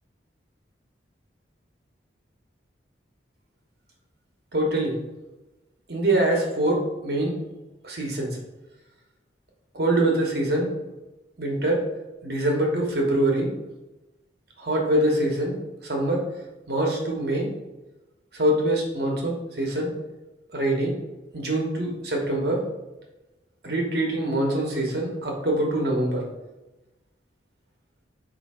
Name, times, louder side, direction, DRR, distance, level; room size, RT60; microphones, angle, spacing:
voice 1, 4.5-4.9 5.9-7.3 7.8-8.4 9.7-10.7 11.4-11.8 12.2-13.5 14.6-15.5 15.8-16.2 16.7-17.5 18.3-19.9 20.5-20.9 21.3-22.6 23.6-26.2, right 1 dB, 55° right, 0 dB, 1.1 m, -24 dB
4.6 x 2.8 x 4.2 m, 1.1 s
head